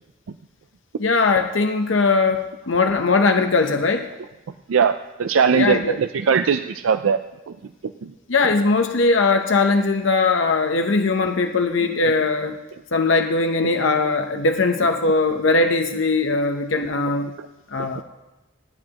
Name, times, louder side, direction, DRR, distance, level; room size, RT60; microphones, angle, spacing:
voice 1, 1.0-4.1 5.5-6.0 8.3-12.6 12.9-17.3 17.7-18.0, left 3 dB, 75° left, 6 dB, 0.8 m, -20 dB
voice 2, 4.7-7.2 7.5-7.6 8.0-8.1 17.8-17.9, right 6 dB, 90° right, 9 dB, 0.4 m, -20 dB
28.5 x 9.8 x 2.9 m, 1.0 s
head